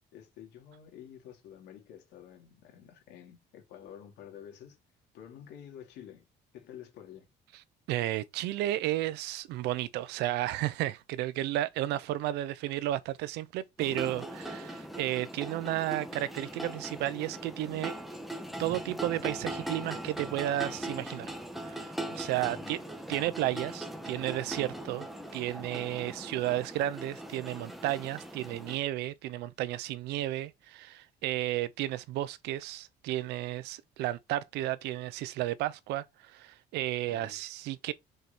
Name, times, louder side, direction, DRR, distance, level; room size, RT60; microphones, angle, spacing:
voice 1, 0.0-4.8 5.1-6.3 6.5-7.3 22.5-22.7 37.1-37.4, left 9 dB, 85° left, 2.9 m, -50 dB
voice 2, 7.9-17.9 18.6-21.3 21.6-22.8 23.1-25.1 25.3-37.9, right 14 dB, 90° right, 0.8 m, -33 dB
sound 1, 13.8-28.8, right 1 dB, ahead, 1.6 m, -40 dB
6.6 x 4.9 x 4.4 m
cardioid pair, 110°, 17 cm